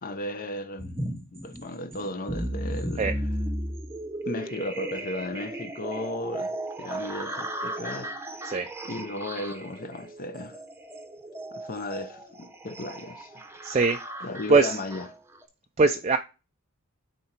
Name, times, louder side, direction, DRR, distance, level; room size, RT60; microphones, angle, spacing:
voice 1, 0.0-3.2 4.2-8.1 8.4-8.5 8.8-10.6 11.5-13.4 14.2-15.1, left 1 dB, 40° left, 0.6 m, -35 dB
sound 1, 0.8-15.4, right 1 dB, 10° right, 0.8 m, -35 dB
voice 2, 13.6-14.0 14.5-14.8 15.8-16.2, right 3 dB, 30° right, 0.4 m, -21 dB
9.2 x 3.8 x 4.4 m
head